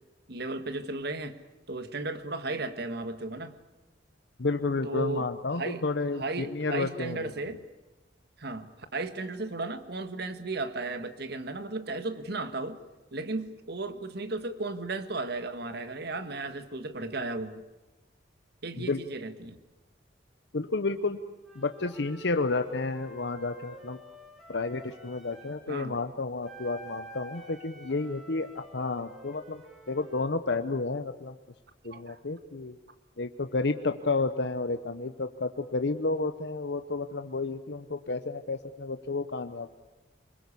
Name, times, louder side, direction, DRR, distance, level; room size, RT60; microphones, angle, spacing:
voice 1, 0.3-1.4 1.7-3.6 4.8-5.8 6.1-7.6 8.4-12.8 13.1-17.6 18.6-19.6 25.7-26.0 31.9-32.2, right 2 dB, 60° right, 10 dB, 1.7 m, -35 dB
voice 2, 4.4-7.3 18.8-19.0 20.5-21.2 21.5-24.0 24.5-29.6 29.9-31.4 31.8-32.8 33.2-39.7, left 3 dB, 65° left, 8 dB, 0.9 m, -31 dB
Wind instrument woodwind instrument, 21.4-25.7 26.4-30.3, equal, ahead, 4.2 m, -49 dB
25.0 x 21.5 x 8.5 m, 1.1 s
head